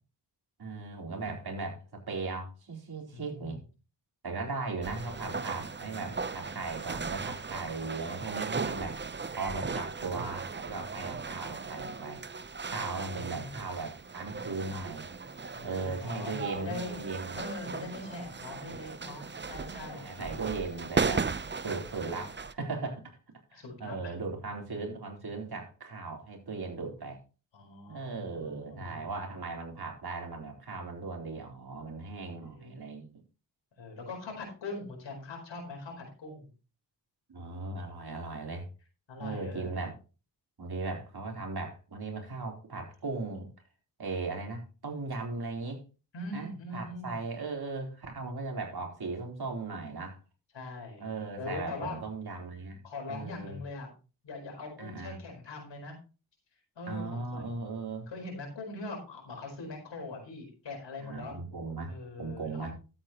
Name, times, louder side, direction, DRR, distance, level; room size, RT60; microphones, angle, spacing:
voice 1, 0.6-3.6 4.2-9.0 9.4-12.2 12.7-15.1 15.6-17.4 19.9-21.3 21.6-23.0 23.5-27.2 27.9-33.1 37.3-38.7 39.2-39.9 40.6-43.5 44.0-45.8 46.3-50.2 51.0-52.8 53.1-53.6 54.8-55.2 56.9-58.1 61.0-61.9 62.2-62.7, right 3 dB, 60° right, 1 dB, 4.1 m, -37 dB
voice 2, 3.1-3.6 12.8-13.6 15.5-17.0 17.3-20.5 22.1-22.2 23.5-24.2 27.5-29.1 32.5-32.8 33.8-36.5 39.1-39.9 46.1-47.2 50.5-51.1 51.4-52.0 52.8-53.9 54.2-56.0 56.7-57.5 58.1-61.4 61.9-62.7, left 2 dB, 80° left, 2 dB, 4.9 m, -42 dB
sound 1, 4.8-22.5, right 5 dB, 25° right, 0.7 m, -37 dB
13.0 x 8.7 x 3.0 m, 0.34 s
cardioid pair, 60°, 43 cm